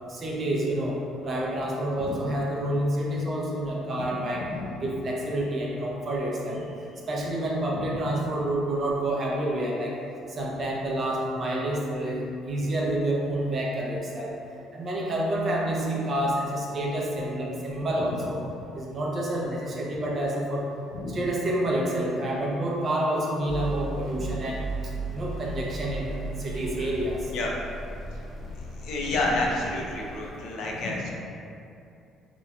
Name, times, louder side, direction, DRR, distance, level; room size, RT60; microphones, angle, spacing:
voice 1, 0.1-4.4 4.8-6.6 7.1-9.9 10.3-14.3 14.7-18.4 18.7-20.7 21.1-24.6 25.1-27.3, right 1 dB, 35° right, -3 dB, 0.4 m, -28 dB
sound 1, 23.5-30.3, right 3 dB, 15° right, 0.8 m, -36 dB
voice 2, 28.5-31.1, left 2 dB, 70° left, -2 dB, 0.4 m, -30 dB
2.9 x 2.1 x 2.3 m, 2.6 s
cardioid pair, 135°, 0 cm